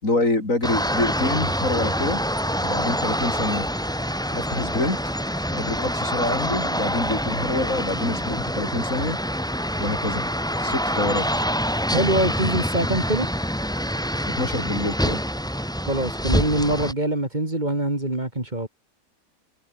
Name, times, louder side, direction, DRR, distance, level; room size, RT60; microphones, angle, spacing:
voice 1, 0.0-2.2 2.6-3.7 4.3-5.0 5.5-9.2 9.8-10.3 10.6-11.4 14.3-15.2, left 2 dB, 70° left, 5.8 m, -26 dB
sound 1, 0.6-16.9, equal, 5° left, 5.2 m, -26 dB
voice 2, 11.9-13.3 15.8-18.7, right 1 dB, 30° right, 3.6 m, -24 dB
omnidirectional pair, 1.4 m